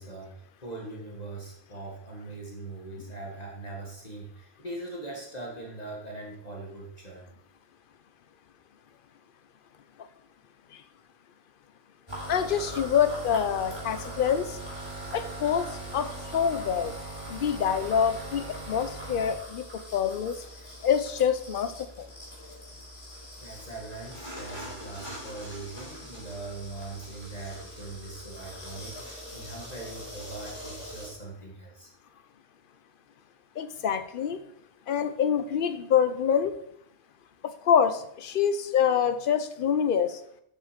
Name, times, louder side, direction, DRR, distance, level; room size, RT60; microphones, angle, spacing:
voice 1, 0.0-7.3 23.4-31.9, right 2 dB, 40° left, -2 dB, 1.7 m, -41 dB
sound 1, 12.1-31.1, right 1 dB, 25° left, 3.4 m, -41 dB
voice 2, 12.3-14.6 15.1-16.9 17.3-20.4 20.8-22.1 33.6-34.4 34.9-36.5 37.4-40.2, left 8 dB, 60° left, 10 dB, 0.8 m, -26 dB
7.5 x 6.0 x 5.1 m, 0.71 s
omnidirectional pair, 1.1 m